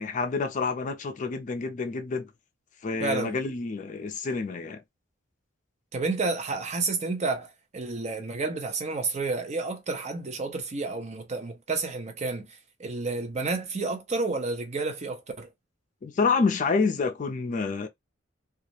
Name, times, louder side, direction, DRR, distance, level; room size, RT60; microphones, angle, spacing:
voice 1, 0.0-2.3 2.8-4.8 16.0-17.9, left 4 dB, 40° left, 0.4 m, -28 dB
voice 2, 3.0-3.4 5.9-15.5, right 3 dB, 35° right, 0.6 m, -30 dB
2.3 x 2.0 x 2.7 m
head